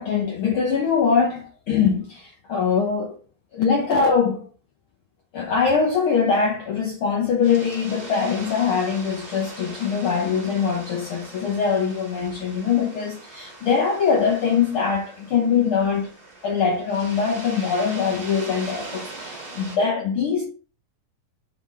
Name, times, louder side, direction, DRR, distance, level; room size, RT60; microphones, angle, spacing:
voice 1, 0.0-3.2 3.5-4.4 5.3-16.1 16.4-20.5, left 6 dB, 80° left, 1.1 m, -22 dB
sound 1, 7.4-19.8, right 2 dB, 35° right, 2.6 m, -40 dB
6.9 x 3.9 x 3.6 m
omnidirectional pair, 3.6 m